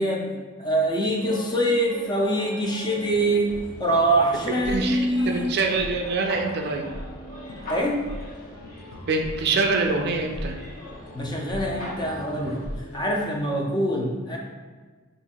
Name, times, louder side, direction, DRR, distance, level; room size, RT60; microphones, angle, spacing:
voice 1, 0.0-3.5 3.8-5.6 7.7-8.0 11.1-12.6 12.9-14.4, right 1 dB, 20° left, -1 dB, 0.5 m, -24 dB
sound 1, 0.6-12.8, left 2 dB, 40° left, 0.9 m, -42 dB
sound 2, 3.0-13.2, equal, 85° left, 0.5 m, -40 dB
voice 2, 4.7-6.9 9.0-10.6, right 3 dB, 50° right, 3 dB, 0.4 m, -25 dB
2.7 x 2.5 x 4.1 m, 1.4 s
head